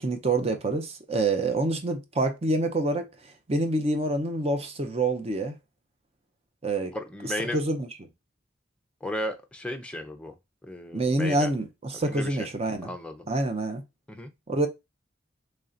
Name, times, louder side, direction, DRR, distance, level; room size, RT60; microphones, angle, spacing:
voice 1, 0.0-3.1 3.5-5.5 6.6-6.9 7.5-7.9 10.9-12.9 13.3-13.8 14.5-14.7, right 2 dB, 30° right, 0.6 m, -26 dB
voice 2, 6.9-7.6 9.0-10.3 10.6-11.5 12.0-12.5 12.8-13.3 14.1-14.3, left 1 dB, 5° left, 0.5 m, -35 dB
3.2 x 2.8 x 3.7 m
head